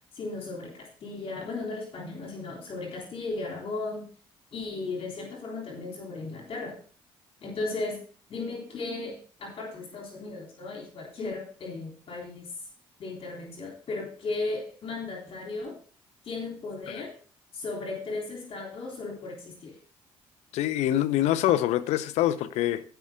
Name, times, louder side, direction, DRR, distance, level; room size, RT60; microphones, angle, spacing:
voice 1, 0.1-4.1 4.5-6.8 7.4-8.0 8.3-12.5 13.0-15.8 16.2-17.1 17.5-19.8, left 3 dB, 55° left, 3.6 m, -36 dB
voice 2, 20.5-22.8, left 13 dB, 75° left, 0.7 m, -25 dB
16.0 x 5.8 x 3.7 m
hypercardioid pair, 55°, 12 cm